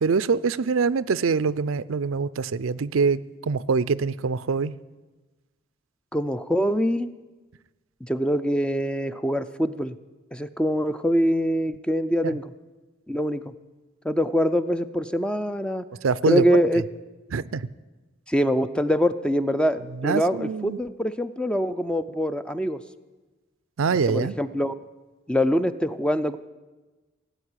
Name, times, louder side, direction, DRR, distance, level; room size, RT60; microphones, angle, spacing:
voice 1, 0.0-4.7 12.2-12.4 16.0-16.6 17.3-17.6 20.0-20.8 23.8-24.3, right 5 dB, 90° right, 17 dB, 0.5 m, -24 dB
voice 2, 6.1-7.1 8.0-9.9 10.3-12.5 13.1-13.5 14.0-15.9 16.3-16.8 18.3-22.8 24.1-24.7 25.3-26.4, equal, 5° left, 11 dB, 0.4 m, -24 dB
17.5 x 8.0 x 9.9 m, 1.2 s
head